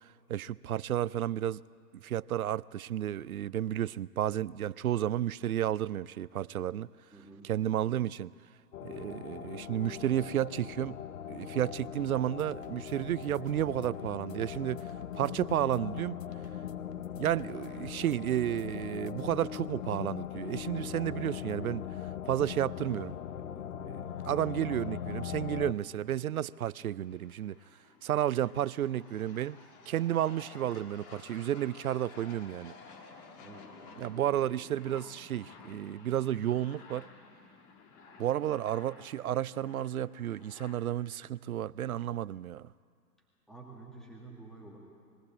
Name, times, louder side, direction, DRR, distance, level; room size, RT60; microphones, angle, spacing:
voice 1, 0.0-1.6 1.9-6.9 7.4-8.3 8.8-11.0 11.3-14.8 15.1-16.2 17.2-21.8 22.3-23.2 23.8-27.6 28.0-29.6 29.9-32.7 34.0-37.1 38.2-42.7, right 11 dB, 60° right, 0.5 m, -32 dB
voice 2, 7.1-8.0 33.3-34.6 43.5-44.8, right 3 dB, ahead, 2.1 m, -51 dB
sound 1, 8.7-25.7, left 9 dB, 55° left, 0.9 m, -40 dB
sound 2, 12.2-19.8, left 6 dB, 75° left, 1.3 m, -58 dB
sound 3, 23.8-40.8, left 4 dB, 25° left, 1.6 m, -54 dB
21.5 x 15.5 x 8.8 m
hypercardioid pair, 140°, 49 cm